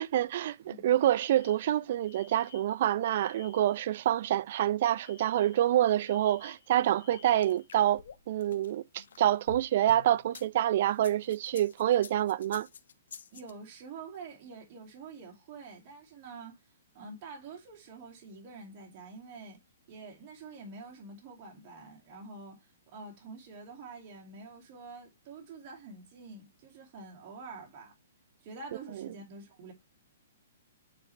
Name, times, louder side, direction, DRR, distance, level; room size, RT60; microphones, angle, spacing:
voice 1, 0.0-8.0 8.3-12.7, right 12 dB, 50° right, 0.4 m, -27 dB
Alarm, 1.1-3.8 5.0-7.7, left 8 dB, 50° left, 2.0 m, -56 dB
sound 1, 7.1-10.5 10.9-13.5, left 6 dB, 75° left, 1.1 m, -48 dB
voice 2, 13.3-16.6 16.9-19.6 19.9-27.9 28.4-29.7, right 4 dB, 30° right, 2.4 m, -47 dB
9.2 x 4.1 x 3.3 m
hypercardioid pair, 160°, 0 cm